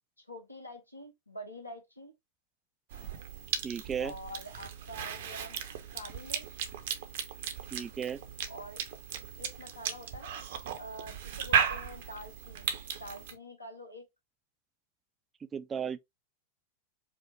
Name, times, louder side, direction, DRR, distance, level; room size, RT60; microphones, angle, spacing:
voice 1, 0.2-2.1 4.0-5.6 5.9-6.6 8.5-8.8 9.4-10.4 10.7-14.1, equal, 85° left, 1.0 m, -46 dB
Cough / Chewing mastication, 2.9-13.3, right 8 dB, 55° right, 0.6 m, -36 dB
voice 2, 3.6-4.1 7.7-8.2 15.5-16.0, right 7 dB, 20° right, 0.3 m, -35 dB
4.8 x 2.0 x 3.0 m
figure-of-eight pair, 90°, 0 cm